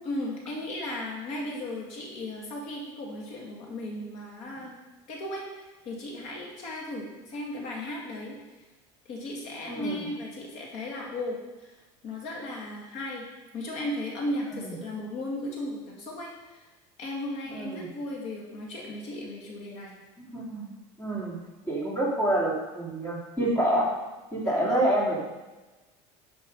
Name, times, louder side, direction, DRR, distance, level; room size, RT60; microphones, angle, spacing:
voice 1, 0.0-4.8 5.1-8.4 9.1-11.8 12.0-13.3 13.5-16.6 17.0-19.9 24.4-24.9, left 1 dB, 60° left, -2 dB, 2.1 m, -36 dB
voice 2, 9.7-10.0 14.5-14.7 17.5-17.8 20.2-20.7 21.0-21.4 21.7-23.9 24.3-25.2, right 1 dB, 15° left, -5 dB, 2.7 m, -27 dB
11.0 x 5.2 x 5.3 m, 1.1 s
cardioid pair, 145°, 13 cm